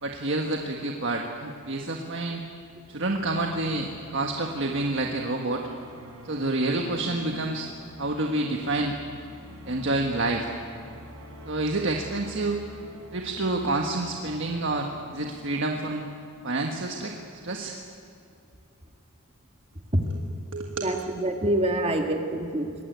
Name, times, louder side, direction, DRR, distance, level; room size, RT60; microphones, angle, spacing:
voice 1, 0.0-2.4 2.9-5.6 6.2-7.7 8.0-8.9 9.7-10.5 11.5-12.6 13.1-16.1 16.4-17.1 17.4-17.8 20.5-20.8, right 2 dB, 55° right, 1 dB, 1.6 m, -28 dB
sound 1, 2.7-16.9, equal, 75° right, 4.0 m, -47 dB
voice 2, 20.8-22.7, right 1 dB, 25° right, 4 dB, 1.8 m, -26 dB
24.0 x 19.5 x 9.4 m, 2.5 s
head